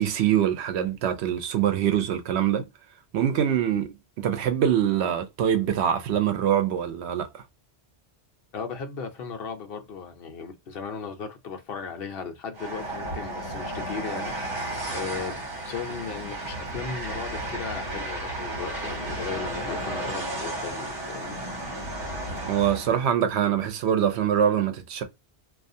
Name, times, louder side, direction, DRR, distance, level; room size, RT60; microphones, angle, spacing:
voice 1, 0.0-2.7 3.1-7.3 22.5-25.0, right 9 dB, 85° right, 0.9 m, -24 dB
voice 2, 8.5-14.3 14.9-21.4, left 5 dB, 65° left, 0.8 m, -36 dB
Train, 12.5-23.0, right 1 dB, 55° right, 1.4 m, -33 dB
2.4 x 2.4 x 2.6 m
omnidirectional pair, 1.1 m